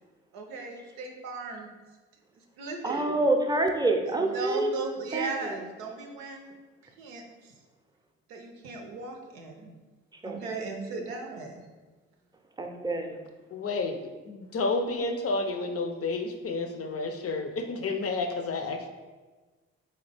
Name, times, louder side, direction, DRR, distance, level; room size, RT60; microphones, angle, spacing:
voice 1, 0.3-1.7 2.6-3.1 4.3-6.5 7.0-7.5 8.3-9.7 10.2-11.6, right 3 dB, 85° right, 2 dB, 0.6 m, -37 dB
voice 2, 2.8-4.8 5.1-5.6 10.1-10.4 12.6-13.2, right 2 dB, 10° right, 3 dB, 0.6 m, -27 dB
voice 3, 13.5-18.9, left 3 dB, 45° left, 5 dB, 0.5 m, -31 dB
3.7 x 2.8 x 3.3 m, 1.3 s
hypercardioid pair, 45°, 34 cm